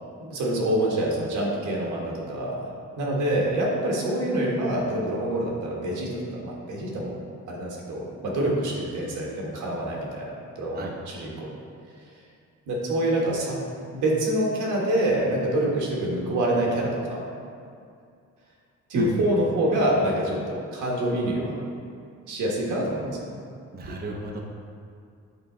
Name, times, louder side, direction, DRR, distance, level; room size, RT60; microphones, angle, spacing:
voice 1, 0.2-2.7 3.0-7.2 7.5-11.5 12.7-13.6 13.9-17.2 18.9-21.5 22.3-23.4 23.8-23.9, right 1 dB, 80° right, -2 dB, 1.5 m, -26 dB
voice 2, 23.7-24.4, right 3 dB, 30° right, 0 dB, 0.7 m, -30 dB
8.3 x 3.9 x 3.8 m, 2.3 s
cardioid pair, 90°, 30 cm